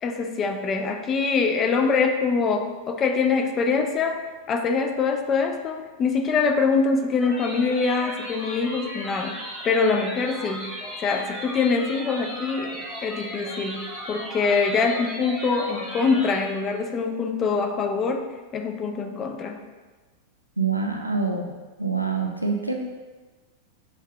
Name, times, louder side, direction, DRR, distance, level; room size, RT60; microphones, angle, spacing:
voice 1, 0.0-4.2 4.5-9.4 9.6-10.7 11.0-18.3 18.5-19.6, left 4 dB, 25° left, 5 dB, 0.4 m, -24 dB
sound 1, 7.2-16.4, equal, 10° left, 1.1 m, -36 dB
voice 2, 20.6-21.5 21.8-22.8, right 4 dB, 90° right, 1 dB, 0.4 m, -25 dB
6.4 x 2.7 x 2.2 m, 1.3 s
figure-of-eight pair, 90°, 0 cm